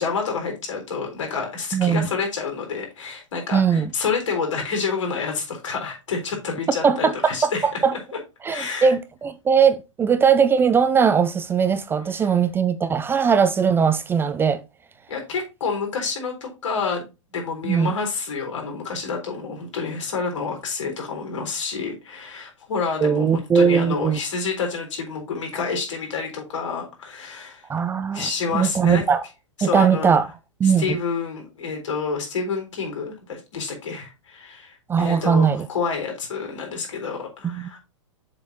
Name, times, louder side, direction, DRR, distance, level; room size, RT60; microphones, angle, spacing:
voice 1, 0.0-7.7 8.5-8.9 15.1-17.1 17.3-27.6 28.1-29.0 29.6-30.2 30.6-37.8, left 5 dB, 75° left, 3.9 m, -28 dB
voice 2, 1.7-2.1 3.5-3.9 6.8-7.9 8.4-14.6 17.6-17.9 23.0-24.2 27.7-28.3 28.5-29.2 29.6-30.2 30.6-31.0 34.9-35.7 37.4-37.8, right 6 dB, 15° right, 0.4 m, -20 dB
7.3 x 6.2 x 2.8 m
hypercardioid pair, 120°, 16 cm